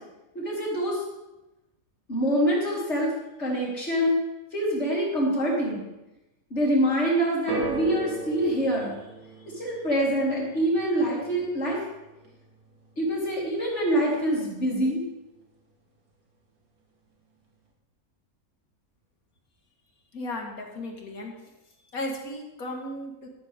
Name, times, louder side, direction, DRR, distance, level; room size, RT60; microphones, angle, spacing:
voice 1, 0.3-1.0 2.1-3.1 3.4-4.2 4.5-5.8 6.5-9.0 9.5-11.8 13.0-15.0, equal, 50° left, -5 dB, 4.3 m, -25 dB
sound 1, 7.5-13.8 14.0-14.7 15.4-15.5, right 3 dB, 85° right, 2.2 m, -39 dB
voice 2, 20.1-21.3 21.9-23.3, left 1 dB, 85° left, 1 dB, 2.4 m, -35 dB
12.5 x 12.5 x 3.7 m, 0.96 s
omnidirectional pair, 1.5 m